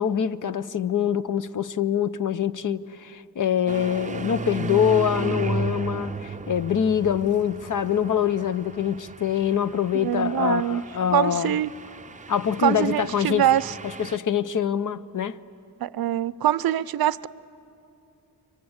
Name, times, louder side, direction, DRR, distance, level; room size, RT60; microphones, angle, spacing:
voice 1, 0.0-11.6 12.3-13.5 14.0-15.4, left 8 dB, 55° left, 0.7 m, -24 dB
sound 1, 3.7-14.2, right 4 dB, 20° right, 0.5 m, -35 dB
voice 2, 9.9-10.8 11.1-11.7 12.6-13.7 15.8-17.3, right 11 dB, 70° right, 0.6 m, -23 dB
29.5 x 24.5 x 8.0 m
wide cardioid pair, 100°, 37 cm